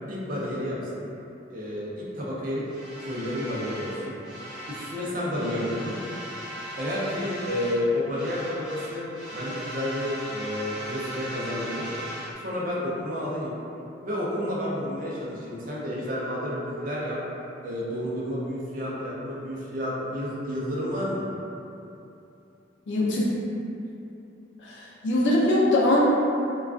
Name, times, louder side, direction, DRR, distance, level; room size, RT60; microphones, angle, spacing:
voice 1, 0.1-1.0 1.5-2.6 3.0-4.1 4.7-6.0 6.8-11.9 12.4-13.6 14.0-17.2 17.6-21.3, left 1 dB, 45° right, -6 dB, 0.5 m, -30 dB
sound 1, 2.7-5.0 5.3-7.9 8.1-12.3, equal, 25° right, 1.0 m, -38 dB
voice 2, 22.9-23.3 24.6-26.0, left 1 dB, 70° left, -5 dB, 0.5 m, -22 dB
2.3 x 2.2 x 2.3 m, 2.8 s
head